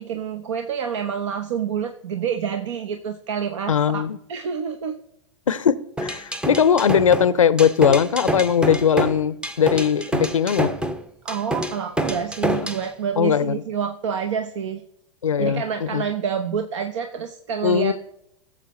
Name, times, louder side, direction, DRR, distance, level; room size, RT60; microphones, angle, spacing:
voice 1, 0.0-4.0 4.3-5.0 11.2-14.8 15.4-17.9, right 7 dB, 65° right, 7 dB, 0.9 m, -28 dB
voice 2, 3.7-4.2 5.5-5.8 6.0-10.7 13.2-13.6 15.2-16.0 17.6-17.9, left 7 dB, 85° left, 17 dB, 0.5 m, -19 dB
sound 1, 6.0-12.9, right 1 dB, 5° right, 0.7 m, -27 dB
17.5 x 7.4 x 3.1 m, 0.80 s
hypercardioid pair, 100°, 16 cm